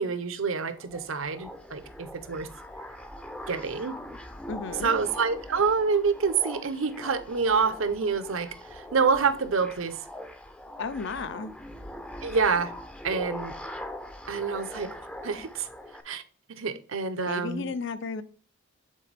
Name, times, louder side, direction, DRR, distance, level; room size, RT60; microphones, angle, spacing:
voice 1, 0.0-2.5 3.5-4.0 4.8-10.0 12.2-12.7 13.0-13.5 14.3-14.9 15.2-15.7 16.0-16.2 16.5-17.7, right 5 dB, 70° right, 0.7 m, -27 dB
sound 1, 0.7-16.0, left 1 dB, 5° left, 0.5 m, -42 dB
voice 2, 4.5-4.9 10.8-11.5 17.2-18.2, left 4 dB, 60° left, 0.5 m, -33 dB
7.6 x 3.9 x 3.3 m
head